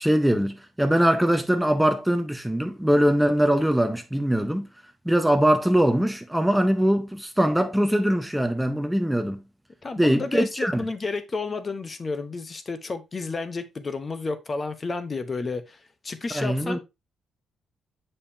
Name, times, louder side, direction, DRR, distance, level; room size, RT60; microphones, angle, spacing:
voice 1, 0.0-4.7 5.1-9.4 10.0-10.8 16.3-16.8, equal, 5° right, 0.6 m, -22 dB
voice 2, 9.8-16.8, left 3 dB, 30° left, 0.9 m, -31 dB
6.7 x 5.5 x 2.7 m
cardioid pair, 90°, 0 cm